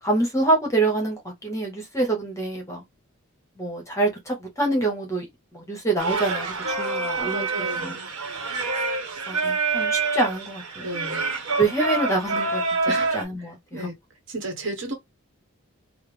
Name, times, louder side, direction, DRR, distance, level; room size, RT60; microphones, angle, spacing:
voice 1, 0.0-2.8 3.6-5.3 5.5-8.0 9.3-10.9 11.6-12.6 13.1-13.9, right 2 dB, 15° left, 1.0 m, -26 dB
Singing, 6.0-13.2, right 3 dB, 90° right, 0.9 m, -27 dB
voice 2, 7.1-8.1 10.8-11.2 12.9-13.9 14.3-14.9, right 2 dB, 55° right, 1.0 m, -33 dB
3.3 x 2.0 x 3.3 m
head